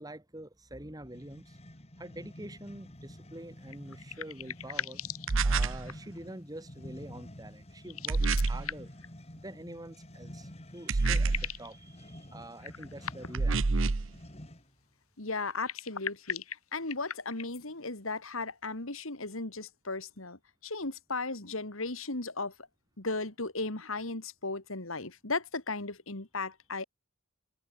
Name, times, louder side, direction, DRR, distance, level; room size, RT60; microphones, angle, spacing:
voice 1, 0.0-1.6 2.0-5.0 5.4-8.9 9.3-13.8, right 1 dB, 15° right, 3.0 m, -46 dB
sound 1, 1.1-14.8, equal, 30° left, 3.6 m, -49 dB
sound 2, 3.7-6.2 7.8-9.1 10.4-10.5 10.8-11.7 12.6-13.6 15.5-17.6, left 8 dB, 85° left, 6.2 m, -40 dB
sound 3, 5.3-5.9 8.1-8.7 10.9-11.6 13.3-14.1, right 3 dB, 60° right, 0.8 m, -27 dB
voice 2, 15.2-16.4 16.7-22.5 23.0-26.8, left 3 dB, 65° left, 3.0 m, -36 dB
head